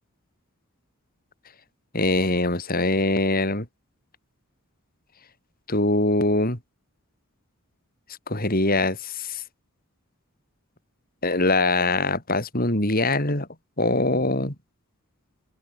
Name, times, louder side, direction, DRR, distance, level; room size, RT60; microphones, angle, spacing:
voice 1, 1.9-3.7 5.7-6.6 8.3-9.4 11.2-13.5 13.8-14.5, left 2 dB, 40° left, 5.0 m, -23 dB
open air
head